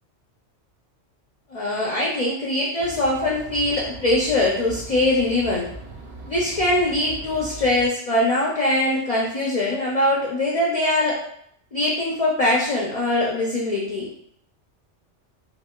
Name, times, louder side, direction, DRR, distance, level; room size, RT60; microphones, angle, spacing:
voice 1, 1.5-5.7 6.3-11.2 11.7-14.1, left 1 dB, 55° left, -4 dB, 0.4 m, -22 dB
sound 1, 2.8-7.9, right 2 dB, 60° right, 0.7 m, -39 dB
3.9 x 2.1 x 2.2 m, 0.68 s
omnidirectional pair, 1.2 m